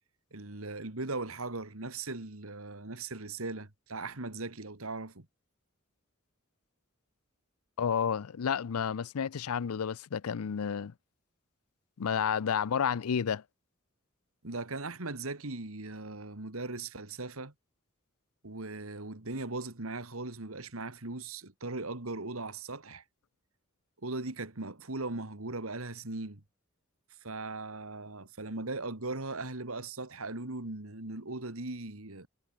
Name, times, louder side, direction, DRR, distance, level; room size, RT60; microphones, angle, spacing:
voice 1, 0.3-5.3 14.4-17.5 18.4-23.0 24.0-26.4 27.2-32.3, right 2 dB, 75° right, 2.4 m, -39 dB
voice 2, 7.8-10.9 12.0-13.4, left 7 dB, 85° left, 0.5 m, -31 dB
head